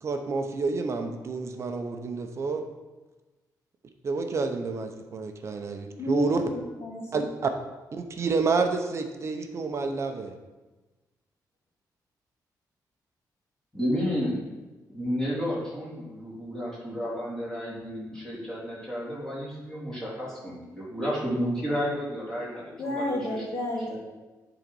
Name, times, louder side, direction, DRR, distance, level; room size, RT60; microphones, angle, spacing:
voice 1, 0.0-2.7 4.0-6.5 7.1-7.5 7.9-10.4, right 4 dB, 40° right, 5 dB, 0.7 m, -29 dB
voice 2, 6.0-7.2 22.8-24.0, left 1 dB, 40° left, -3 dB, 2.2 m, -31 dB
voice 3, 13.7-14.4 14.9-23.4 23.8-23.9, equal, 5° left, -8 dB, 2.8 m, -31 dB
8.9 x 4.0 x 5.4 m, 1.2 s
wide cardioid pair, 155°, 7 cm